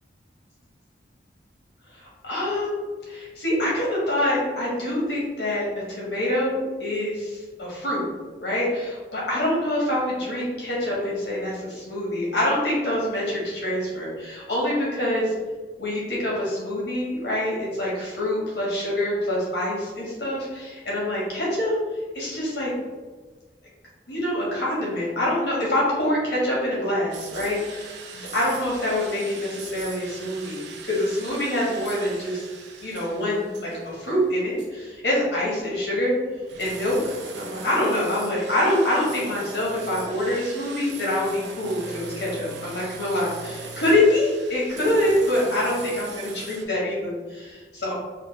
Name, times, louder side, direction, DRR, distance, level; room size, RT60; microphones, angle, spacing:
voice 1, 1.9-8.0 8.4-15.3 15.8-21.8 22.1-22.7 24.1-32.4 32.8-36.2 36.6-47.9, left 1 dB, 80° left, -5 dB, 1.3 m, -25 dB
sound 1, 27.1-34.3 34.6-34.7 35.7-46.6, right 4 dB, 80° right, 0.5 m, -40 dB
3.2 x 2.3 x 3.4 m, 1.4 s
head